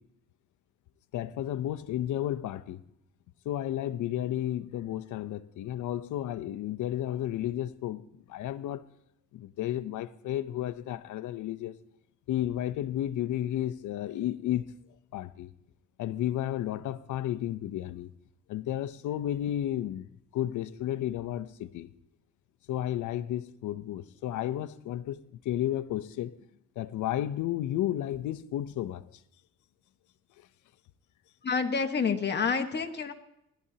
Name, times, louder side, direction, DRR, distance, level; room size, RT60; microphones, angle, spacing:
voice 1, 1.1-2.8 3.4-8.9 9.3-11.8 12.3-14.8 15.1-15.5 16.0-18.1 18.5-20.1 20.3-21.9 22.7-26.4 26.8-29.0 30.4-30.5, left 12 dB, 80° left, 0.7 m, -32 dB
voice 2, 31.4-33.1, left 5 dB, 35° left, 1.4 m, -28 dB
19.5 x 12.5 x 2.9 m
cardioid pair, 90°, 30 cm